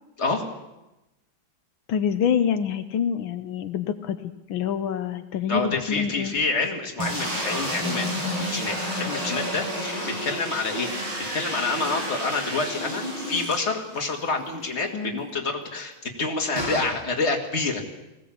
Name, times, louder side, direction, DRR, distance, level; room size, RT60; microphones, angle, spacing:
voice 1, 1.9-4.2 4.5-6.3 14.9-15.2, left 8 dB, 85° left, 9 dB, 1.7 m, -26 dB
voice 2, 5.5-17.8, left 3 dB, 35° left, 2 dB, 2.5 m, -28 dB
sound 1, 7.0-14.1 14.5-14.6 14.8-14.9 16.6-16.9, equal, 85° right, 7.9 m, -30 dB
20.0 x 16.5 x 8.6 m, 0.98 s
omnidirectional pair, 2.2 m